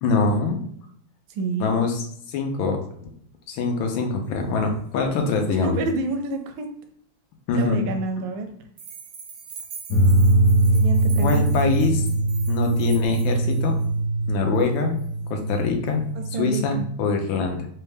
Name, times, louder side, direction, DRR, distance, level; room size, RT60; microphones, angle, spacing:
voice 1, 0.0-0.6 1.6-2.8 3.5-5.8 7.5-7.8 11.2-12.0 12.5-13.7 14.3-15.0 15.3-16.0 16.4-17.7, left 4 dB, 90° left, 4 dB, 1.5 m, -24 dB
voice 2, 1.3-1.8 5.5-6.7 7.6-8.5 10.7-11.4 16.1-16.8, right 3 dB, 85° right, 6 dB, 1.4 m, -28 dB
sound 1, 8.8-13.9 14.5-14.6 15.0-15.1 15.9-16.0, right 5 dB, 70° right, 0.8 m, -42 dB
sound 2, 9.9-16.8, right 2 dB, 60° left, 1.0 m, -22 dB
4.1 x 2.2 x 3.3 m, 0.65 s
omnidirectional pair, 2.1 m